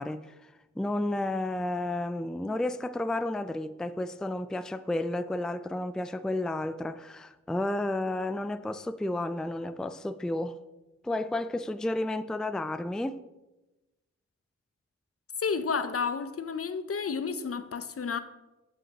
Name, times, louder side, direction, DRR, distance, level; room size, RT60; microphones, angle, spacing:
voice 1, 0.0-10.6 11.0-13.2, left 1 dB, ahead, 0.4 m, -32 dB
voice 2, 15.4-18.2, left 5 dB, 50° left, 0.7 m, -31 dB
16.0 x 5.6 x 2.9 m
cardioid pair, 50°, 29 cm